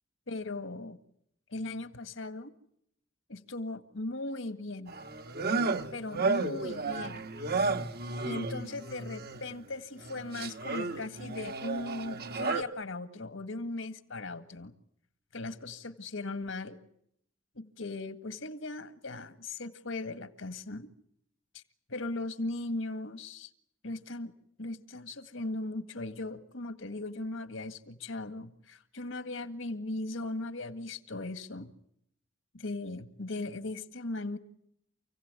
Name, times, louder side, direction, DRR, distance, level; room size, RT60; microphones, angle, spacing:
voice 1, 0.3-1.0 1.5-2.5 3.3-4.9 5.9-7.2 8.2-14.7 15.3-16.8 17.6-20.9 21.5-21.6 21.9-23.5 23.8-24.3 24.6-31.7 32.5-34.4, left 2 dB, 75° left, 10 dB, 1.9 m, -38 dB
sound 1, 4.9-9.5 10.0-12.6, right 3 dB, 55° right, 1.5 m, -33 dB
29.0 x 17.0 x 9.7 m, 0.73 s
head